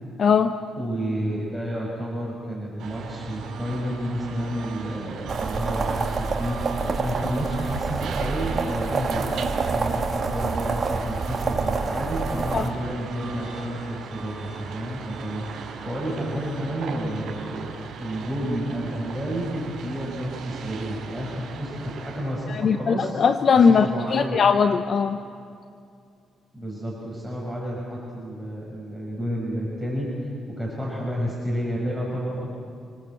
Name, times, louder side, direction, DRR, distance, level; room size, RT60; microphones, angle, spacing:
voice 1, 0.2-0.5 12.5-12.7 22.5-25.2, left 6 dB, 50° left, 9 dB, 0.8 m, -20 dB
voice 2, 0.8-9.2 9.7-17.7 18.0-23.1 23.6-24.4 26.5-30.1 30.6-32.5, equal, 5° left, -5 dB, 6.2 m, -30 dB
sound 1, 2.8-22.6, right 6 dB, 75° right, 4.4 m, -38 dB
sound 2, 5.3-12.7, right 4 dB, 40° right, 2.1 m, -27 dB
28.0 x 19.5 x 7.9 m, 2.4 s
cardioid pair, 90°, 0 cm